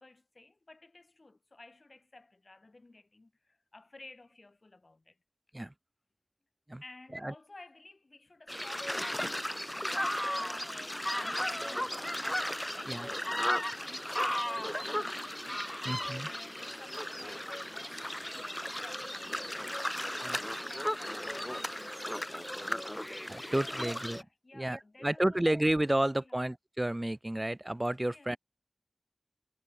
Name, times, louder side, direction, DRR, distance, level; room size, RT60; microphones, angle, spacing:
voice 1, 0.0-5.2 6.8-12.4 12.7-13.0 13.2-15.8 16.2-20.2 20.5-23.2 23.5-23.9 24.2-25.5 26.2-26.4 28.1-28.4, left 2 dB, 85° left, 6.4 m, -55 dB
sound 1, 8.5-24.2, equal, 15° left, 1.1 m, -35 dB
voice 2, 15.8-16.3 20.2-20.4 23.3-24.2 24.5-28.4, right 1 dB, 30° right, 1.7 m, -31 dB
wide cardioid pair, 45°, 0 cm